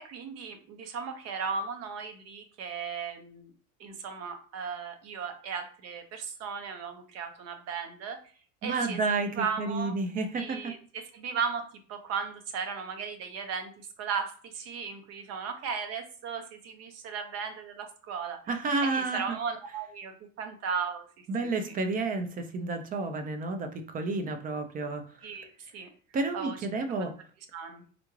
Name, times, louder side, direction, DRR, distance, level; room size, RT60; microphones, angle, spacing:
voice 1, 0.0-3.5 3.8-8.2 8.6-9.0 9.3-9.9 10.4-18.4 18.8-21.3 25.2-25.9 26.3-26.6 27.5-27.8, right 6 dB, 50° right, 6 dB, 0.7 m, -36 dB
voice 2, 8.6-10.7 18.5-19.4 21.3-25.3 26.1-27.1, right 3 dB, 25° right, 7 dB, 0.4 m, -31 dB
3.6 x 2.3 x 3.0 m, 0.42 s
cardioid pair, 155°, 33 cm